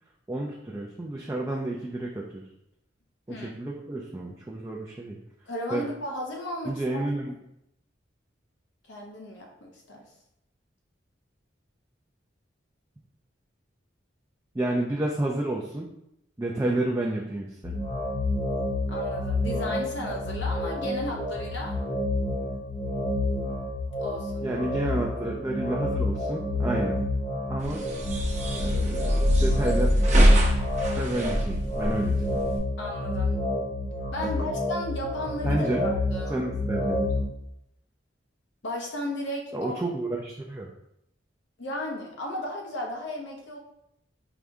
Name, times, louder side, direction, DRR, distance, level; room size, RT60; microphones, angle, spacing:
voice 1, 0.3-2.4 3.3-5.2 5.7-5.9 6.6-7.3 14.5-15.9 16.4-17.8 24.4-27.0 27.5-27.8 28.6-29.9 31.0-32.4 34.2-34.3 35.4-35.9 36.3-37.1 39.5-40.7, right 1 dB, 15° right, -2 dB, 0.4 m, -30 dB
voice 2, 5.5-7.0 8.9-10.1 18.9-21.8 24.0-24.4 32.8-33.3 34.1-36.4 38.6-39.8 41.6-43.6, left 1 dB, 70° left, 0 dB, 0.7 m, -34 dB
sound 1, 17.6-37.3, left 2 dB, 40° left, 1.0 m, -29 dB
sound 2, 27.6-32.6, equal, 40° right, 0.8 m, -23 dB
4.8 x 2.6 x 3.4 m, 0.79 s
head